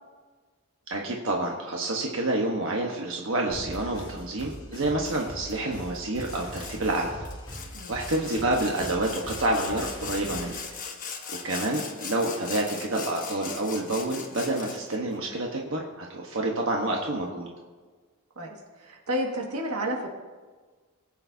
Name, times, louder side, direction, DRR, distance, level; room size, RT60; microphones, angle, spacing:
voice 1, 0.9-7.2 7.9-10.6 11.3-17.5, right 2 dB, 60° right, -1 dB, 1.3 m, -28 dB
sound 1, 3.5-10.6, equal, 20° left, 2.5 m, -41 dB
Sawing, 6.2-6.8 7.2-15.0, left 6 dB, 40° left, 1.2 m, -39 dB
voice 2, 18.4-20.1, equal, 90° right, 0 dB, 2.0 m, -31 dB
19.5 x 8.8 x 2.8 m, 1.4 s
head